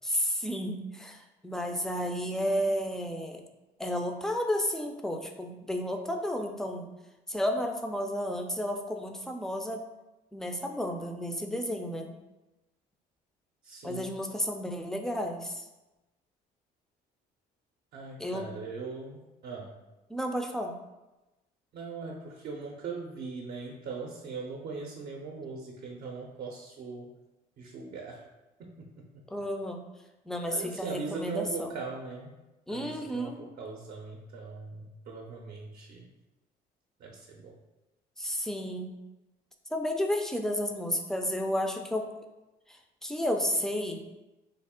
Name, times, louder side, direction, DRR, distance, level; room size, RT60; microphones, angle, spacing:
voice 1, 0.0-3.4 3.8-6.9 7.3-9.9 10.3-12.1 13.8-15.7 18.2-18.5 20.1-20.8 29.3-29.8 30.3-31.7 32.7-33.4 38.2-39.0 39.7-42.1 42.7-44.0, equal, 5° left, 4 dB, 0.3 m, -32 dB
voice 2, 13.6-14.2 17.9-19.8 21.7-27.1 27.6-28.2 28.6-29.3 30.5-32.4 32.7-36.1 37.0-37.6, right 4 dB, 55° right, -1 dB, 0.6 m, -40 dB
3.4 x 2.4 x 3.5 m, 1.0 s
cardioid pair, 110°, 17 cm